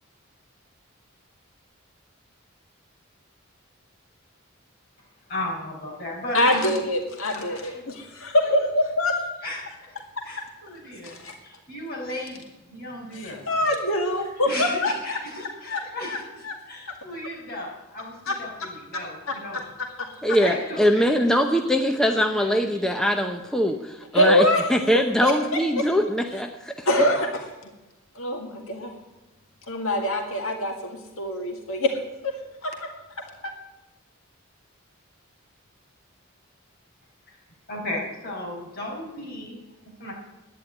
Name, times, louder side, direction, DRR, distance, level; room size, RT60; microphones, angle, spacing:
voice 1, 5.3-6.8 7.3-8.5 9.4-10.0 10.2-13.4 14.4-19.6 20.4-21.2 22.4-22.5 37.7-39.6 40.0-40.1, left 1 dB, 45° left, -2 dB, 5.1 m, -35 dB
voice 2, 6.3-9.1 11.0-11.3 13.1-16.2 16.4-16.5 18.3-18.4 19.3-19.4 20.0-20.1 24.1-24.7 25.2-25.6 26.9-27.5 28.2-28.9 29.7-32.0 32.6-32.7 33.4-33.5, left 1 dB, 85° left, 2 dB, 2.1 m, -24 dB
voice 3, 20.2-26.9, equal, 5° left, 4 dB, 0.7 m, -22 dB
10.5 x 10.0 x 9.7 m, 1.0 s
head